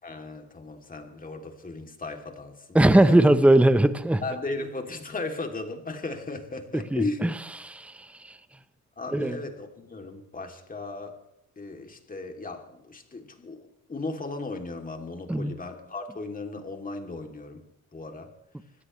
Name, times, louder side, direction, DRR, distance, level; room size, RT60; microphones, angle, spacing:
voice 1, 0.0-3.3 4.2-7.3 9.0-11.2 11.6-17.6 17.9-18.3, left 3 dB, 30° left, 3.0 m, -36 dB
voice 2, 2.7-4.2 6.9-7.3 7.6-8.4 9.1-9.4 15.3-15.5, right 1 dB, 5° right, 0.9 m, -20 dB
25.0 x 17.0 x 3.3 m
cardioid pair, 90°, 30 cm